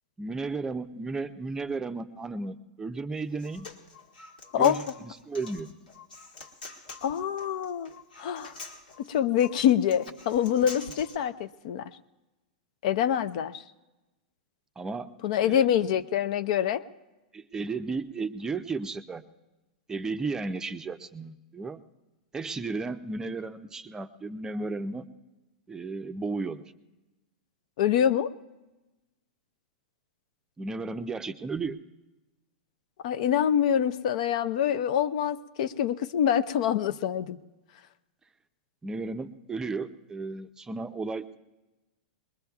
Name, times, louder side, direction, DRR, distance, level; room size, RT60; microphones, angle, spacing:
voice 1, 0.2-3.7 4.6-4.8 5.3-5.7 14.8-15.1 15.4-15.6 17.3-19.2 19.9-21.8 22.3-25.1 25.7-26.6 30.6-31.8 38.8-41.4, right 3 dB, 15° right, 8 dB, 0.5 m, -34 dB
Human voice, 3.2-11.2, left 3 dB, 85° left, 1.9 m, -46 dB
voice 2, 7.0-7.9 8.2-8.5 9.0-11.8 12.8-13.6 15.2-16.8 27.8-28.3 33.0-37.4, left 9 dB, 60° left, 12 dB, 0.6 m, -25 dB
21.5 x 21.5 x 2.4 m, 1.1 s
hypercardioid pair, 115°, 4 cm